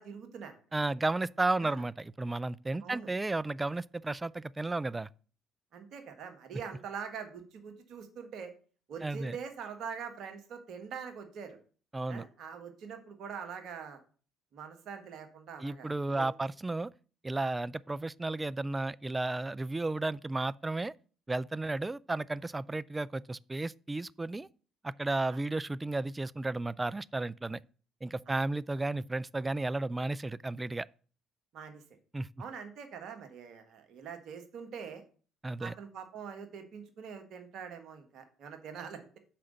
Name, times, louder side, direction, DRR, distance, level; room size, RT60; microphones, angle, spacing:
voice 1, 0.0-0.6 1.6-1.8 2.8-3.1 5.7-8.5 8.9-11.6 12.1-14.0 14.5-16.3 25.3-25.4 28.3-28.4 31.5-31.8 32.4-35.0 35.6-39.2, right 6 dB, 60° right, 1.4 m, -44 dB
voice 2, 0.7-5.1 9.0-9.4 11.9-12.2 15.6-16.9 17.2-20.9 21.3-24.5 24.8-27.6 28.0-30.9 32.1-32.3 35.4-35.7, right 2 dB, 20° right, 0.3 m, -33 dB
5.9 x 4.9 x 6.4 m
hypercardioid pair, 50°, 0 cm